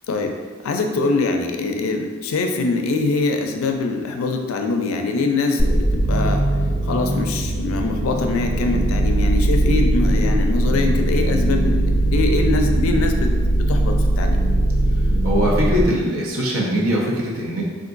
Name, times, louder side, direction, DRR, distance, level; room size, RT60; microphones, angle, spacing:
voice 1, 0.6-6.4 6.8-14.4, left 3 dB, 75° left, 4 dB, 0.4 m, -23 dB
sound 1, 5.6-15.8, right 1 dB, 10° left, 0.5 m, -19 dB
voice 2, 15.2-17.6, equal, 85° right, -3 dB, 0.7 m, -21 dB
3.7 x 2.5 x 2.5 m, 1.5 s
head